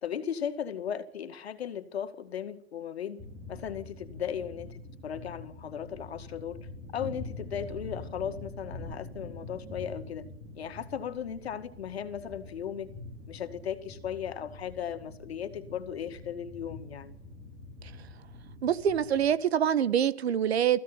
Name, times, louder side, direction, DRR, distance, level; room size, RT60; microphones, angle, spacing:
voice 1, 0.0-3.2 3.5-6.7 6.9-10.3 10.5-12.9 13.3-17.2, left 8 dB, 85° left, 2.1 m, -36 dB
sound 1, 3.2-19.3, left 2 dB, 10° right, 5.3 m, -45 dB
voice 2, 18.6-20.8, right 9 dB, 90° right, 1.4 m, -25 dB
19.0 x 15.5 x 8.9 m
hypercardioid pair, 165°, 31 cm